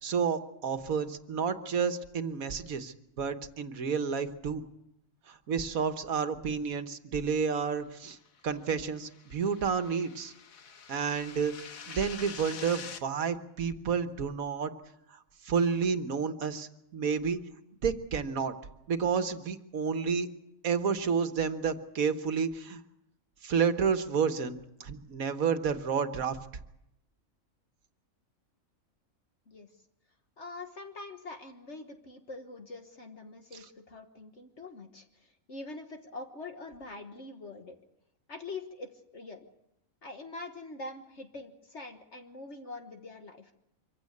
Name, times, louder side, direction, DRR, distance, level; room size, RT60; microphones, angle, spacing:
voice 1, 0.0-4.6 5.3-8.2 8.4-10.3 10.9-14.7 15.4-17.4 17.8-18.5 18.9-20.3 20.6-22.8 23.4-26.4, right 6 dB, 85° right, 9 dB, 1.7 m, -30 dB
sound 1, 8.6-13.0, left 6 dB, 80° left, 1.6 m, -46 dB
voice 2, 30.4-37.8 38.3-39.5 40.0-43.5, left 3 dB, 55° left, 5 dB, 1.7 m, -44 dB
24.5 x 16.0 x 8.5 m, 0.86 s
omnidirectional pair, 1.4 m